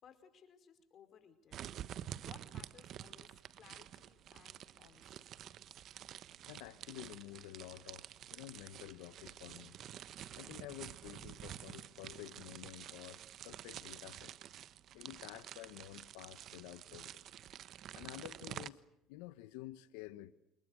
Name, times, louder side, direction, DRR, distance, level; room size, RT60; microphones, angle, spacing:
voice 1, 0.0-1.6 2.2-5.3, left 8 dB, 50° left, 5.0 m, -61 dB
sound 1, 1.5-18.7, right 11 dB, 60° right, 1.2 m, -49 dB
voice 2, 6.4-8.1 8.3-9.7 10.3-14.3 14.9-17.3 17.9-18.8 19.1-20.3, left 15 dB, 85° left, 1.3 m, -50 dB
29.0 x 27.5 x 6.5 m
supercardioid pair, 85°, 0 cm